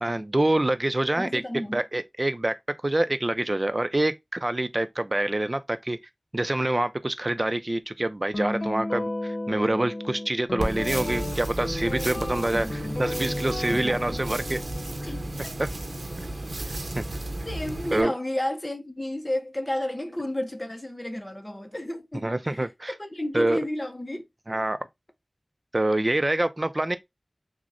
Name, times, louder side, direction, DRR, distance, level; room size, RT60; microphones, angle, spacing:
voice 1, 0.0-1.4 1.7-2.5 2.8-6.0 6.3-14.6 15.6-15.7 16.6-17.0 17.9-18.1 22.2-22.9 23.3-23.6 24.5-24.8 25.7-27.0, right 1 dB, 40° right, 0.4 m, -26 dB
voice 2, 1.1-1.8 12.5-13.0 13.7-14.2 15.0-15.5 17.5-24.2, left 1 dB, 25° left, 0.6 m, -32 dB
Guitar, 8.3-16.5, left 1 dB, 80° left, 0.8 m, -34 dB
sound 1, 10.6-18.0, right 1 dB, 80° right, 0.6 m, -34 dB
6.1 x 2.1 x 2.5 m
wide cardioid pair, 40°, 0 cm